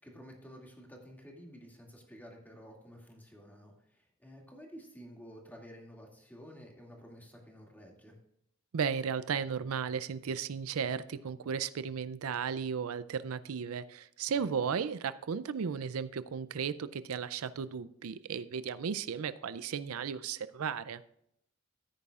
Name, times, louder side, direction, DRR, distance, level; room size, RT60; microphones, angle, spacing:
voice 1, 0.0-8.2 14.3-14.5, equal, 10° left, 0 dB, 2.3 m, -52 dB
voice 2, 8.7-21.0, right 6 dB, 85° right, 15 dB, 0.5 m, -35 dB
14.0 x 9.4 x 2.5 m, 0.75 s
head